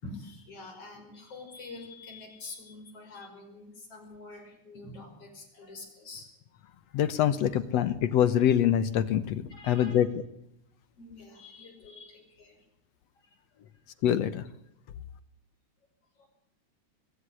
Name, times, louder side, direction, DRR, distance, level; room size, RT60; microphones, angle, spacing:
voice 1, 0.0-6.3 7.0-7.1 9.5-10.0 11.0-12.6 13.2-13.4 16.2-16.3, left 2 dB, 45° left, 4 dB, 6.7 m, -46 dB
voice 2, 6.9-10.1 14.0-14.4, left 10 dB, 65° left, 15 dB, 1.8 m, -25 dB
22.0 x 16.5 x 9.9 m, 0.79 s
omnidirectional pair, 3.7 m